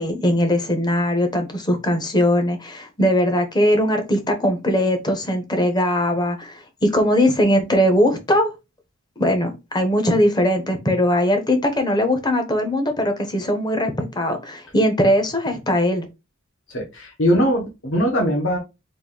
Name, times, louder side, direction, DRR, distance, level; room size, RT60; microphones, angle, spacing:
voice 1, 0.0-8.5 9.2-16.1, equal, 20° left, 6 dB, 0.8 m, -20 dB
voice 2, 16.7-18.6, equal, 65° left, -1 dB, 1.4 m, -20 dB
3.9 x 2.6 x 3.8 m, 0.25 s
head